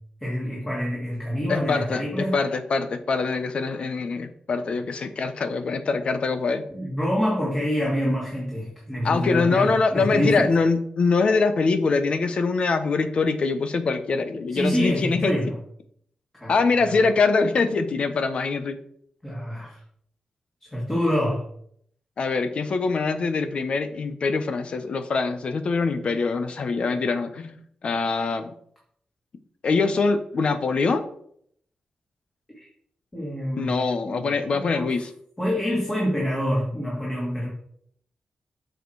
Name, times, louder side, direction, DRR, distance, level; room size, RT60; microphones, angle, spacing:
voice 1, 0.2-2.3 6.7-10.5 14.5-15.5 16.3-16.5 16.9-17.0 19.2-19.8 20.6-21.4 32.6-32.7 33.1-34.9 35.4-37.5, equal, 15° left, -4 dB, 2.4 m, -26 dB
voice 2, 1.5-6.6 9.0-15.3 16.5-18.8 22.2-27.6 27.8-28.5 29.6-31.1 33.6-35.1, left 4 dB, 55° left, 10 dB, 0.9 m, -23 dB
7.8 x 6.5 x 4.7 m, 0.66 s
wide cardioid pair, 140°, 2 cm